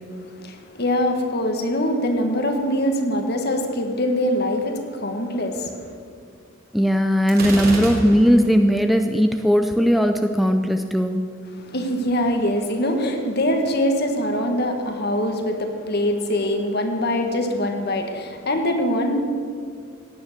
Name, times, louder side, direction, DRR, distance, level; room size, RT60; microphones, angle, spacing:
voice 1, 0.3-5.9 11.5-19.2, left 1 dB, 50° left, 5 dB, 1.7 m, -23 dB
voice 2, 6.7-11.2, equal, ahead, 6 dB, 0.5 m, -18 dB
Gunshot gunfire, 7.3-8.5, right 1 dB, 50° right, 2.9 m, -29 dB
16.5 x 10.0 x 6.7 m, 2.2 s
head